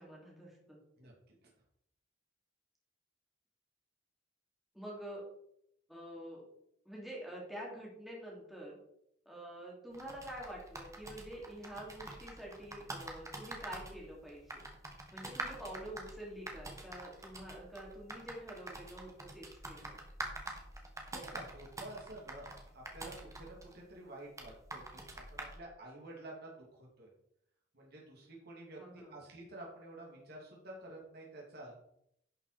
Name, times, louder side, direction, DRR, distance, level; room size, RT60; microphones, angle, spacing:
voice 1, 0.0-0.8 4.7-5.2 5.9-6.4 6.8-8.8 9.3-14.6 15.1-20.0 28.8-29.2, right 1 dB, ahead, -4 dB, 2.8 m, -47 dB
voice 2, 1.0-1.3 21.1-27.1 27.7-31.8, right 1 dB, 55° right, -2 dB, 2.7 m, -50 dB
sound 1, 9.9-25.6, right 2 dB, 15° right, 1.4 m, -47 dB
11.0 x 6.1 x 4.1 m, 0.73 s
head